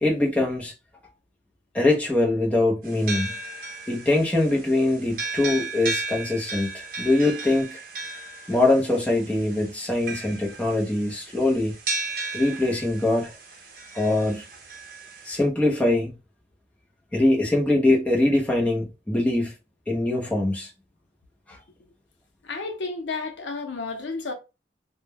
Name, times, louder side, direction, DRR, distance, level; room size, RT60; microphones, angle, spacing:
voice 1, 0.0-0.7 1.7-3.3 3.9-7.8 8.5-11.8 12.3-13.3 13.9-14.5 15.3-16.1 17.1-19.5 19.9-20.7 21.5-21.6, left 2 dB, 10° left, 0.5 m, -23 dB
sound 1, 2.8-15.4, right 3 dB, 50° right, 0.6 m, -35 dB
voice 2, 22.4-24.3, left 3 dB, 90° left, 0.6 m, -31 dB
2.1 x 2.1 x 3.3 m
head